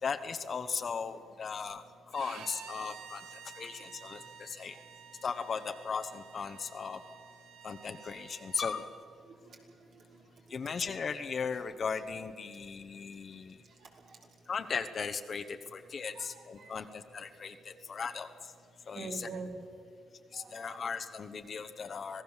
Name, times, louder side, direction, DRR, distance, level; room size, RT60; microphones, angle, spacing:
voice 1, 0.0-4.8 5.2-7.0 7.6-8.9 10.5-13.6 14.5-18.5 18.9-19.3 20.3-22.2, left 5 dB, 45° left, 8 dB, 1.0 m, -37 dB
Bowed string instrument, 2.1-8.9, right 7 dB, 85° right, 1.5 m, -51 dB
voice 2, 9.2-9.6 9.9-10.2 10.5-10.7 13.8-14.2 16.1-16.7 18.9-19.5 20.3-20.8 22.1-22.2, right 4 dB, 65° right, 1 dB, 4.1 m, -46 dB
26.0 x 17.5 x 7.4 m, 2.5 s
cardioid pair, 90°, 0 cm